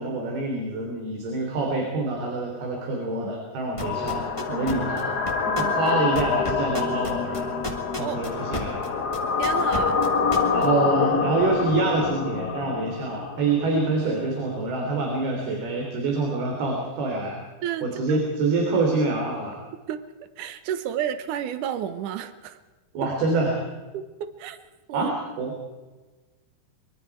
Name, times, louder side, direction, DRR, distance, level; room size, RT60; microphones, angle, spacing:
voice 1, 0.0-5.1 5.6-7.5 8.0-8.9 10.5-17.4 17.8-19.6 22.9-23.6 24.9-25.5, right 3 dB, 90° right, 1 dB, 5.3 m, -26 dB
sound 1, 3.8-13.9, left 5 dB, 80° left, 0.8 m, -26 dB
sound 2, 3.8-8.9 9.1-10.7, left 1 dB, 10° left, 1.9 m, -32 dB
voice 2, 9.4-10.1 17.6-18.3 19.9-22.6 23.9-24.6 24.9-25.1, right 10 dB, 65° right, 10 dB, 2.5 m, -31 dB
24.5 x 23.5 x 4.8 m, 1.2 s
omnidirectional pair, 4.3 m